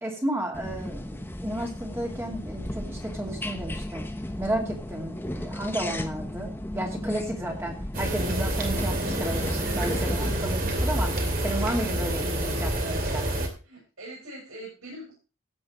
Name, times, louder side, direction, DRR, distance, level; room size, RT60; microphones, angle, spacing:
voice 1, 0.0-4.1 4.4-13.3, right 1 dB, 10° right, 1 dB, 2.4 m, -33 dB
sound 1, 0.5-10.5, left 1 dB, 10° left, 1.0 m, -35 dB
sound 2, 7.9-13.5, right 1 dB, 40° right, 2.6 m, -27 dB
voice 2, 9.9-10.3 13.6-15.1, right 1 dB, 80° right, -6 dB, 7.5 m, -42 dB
15.5 x 8.6 x 3.1 m, 0.34 s
head